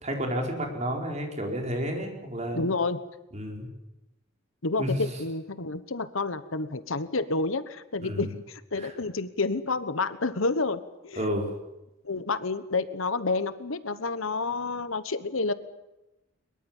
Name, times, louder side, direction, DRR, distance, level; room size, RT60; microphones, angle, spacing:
voice 1, 0.0-2.6 3.3-3.7 4.8-5.0 8.0-8.3 8.8-8.9 11.1-11.5, equal, 30° right, 2 dB, 4.6 m, -31 dB
voice 2, 2.5-3.0 4.6-11.3 12.0-15.5, left 3 dB, 75° left, 13 dB, 1.2 m, -29 dB
22.5 x 22.5 x 7.3 m, 0.95 s
head